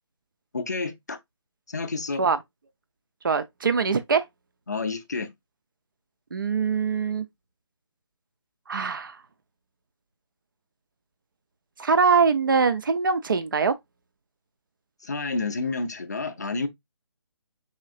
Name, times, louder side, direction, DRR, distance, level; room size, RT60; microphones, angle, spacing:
voice 1, 0.5-1.2 1.7-2.2 4.7-5.3 15.0-16.7, left 3 dB, 35° left, 0.5 m, -29 dB
voice 2, 3.2-4.2 6.3-7.3 8.7-9.2 11.8-13.7, right 5 dB, 45° right, 0.4 m, -23 dB
4.3 x 3.6 x 2.3 m
hypercardioid pair, 180°, 15 cm